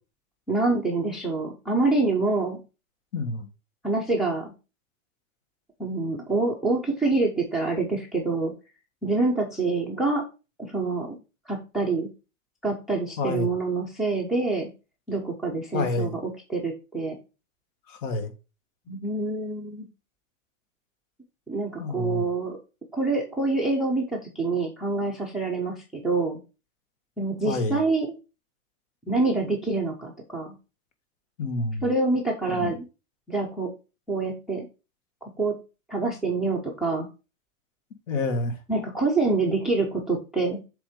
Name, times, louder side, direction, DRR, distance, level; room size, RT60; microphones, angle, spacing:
voice 1, 0.5-2.6 3.8-4.5 5.8-8.5 9.0-10.2 10.6-11.2 11.5-12.1 12.6-14.7 15.1-17.2 18.9-19.9 21.5-22.6 22.9-26.4 27.2-28.2 29.1-30.5 31.8-32.8 33.3-33.7 34.1-34.7 35.4-35.5 35.9-37.1 38.7-40.6, right 3 dB, ahead, 0.4 m, -26 dB
voice 2, 3.1-3.5 13.2-13.5 15.7-16.2 17.9-18.3 21.8-22.3 27.4-27.8 31.4-31.8 32.5-32.7 38.1-38.5, left 2 dB, 65° left, 1.7 m, -28 dB
7.0 x 3.6 x 4.9 m
supercardioid pair, 155°, 42 cm